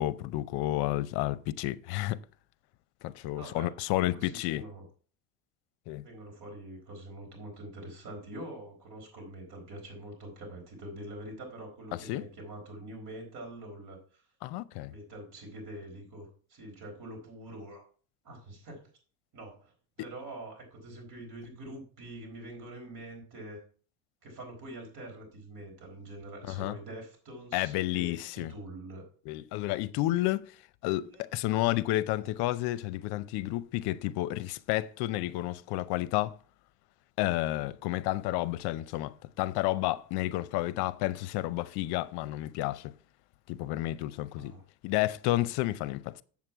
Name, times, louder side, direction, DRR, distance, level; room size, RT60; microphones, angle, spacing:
voice 1, 0.0-2.2 3.0-4.6 5.9-6.0 12.1-12.2 14.4-14.9 26.5-26.7 27.5-28.5 29.3-30.5 30.8-36.4 37.2-42.9 43.5-44.5 44.8-46.2, left 16 dB, 70° left, 0.7 m, -31 dB
voice 2, 3.4-4.8 6.0-14.2 14.9-17.8 18.2-18.8 19.3-19.7 20.0-23.6 24.2-29.1 31.1-31.2 44.4-44.6, right 1 dB, 50° right, 4.3 m, -45 dB
7.6 x 7.3 x 4.6 m
cardioid pair, 130°, 42 cm